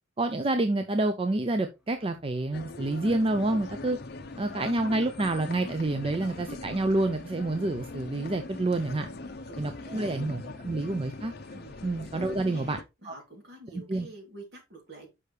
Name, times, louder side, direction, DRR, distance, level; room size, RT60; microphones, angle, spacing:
voice 1, 0.2-4.0 4.4-9.1 9.6-11.3 11.8-12.8 13.0-13.1 13.7-14.1, right 2 dB, 30° right, 0.5 m, -28 dB
sound 1, 1.4-12.8, left 1 dB, 5° right, 1.2 m, -55 dB
sound 2, 2.5-12.8, left 3 dB, 55° left, 0.6 m, -41 dB
voice 2, 8.9-10.1 11.5-15.1, right 1 dB, 60° right, 2.8 m, -48 dB
6.5 x 5.6 x 3.2 m
head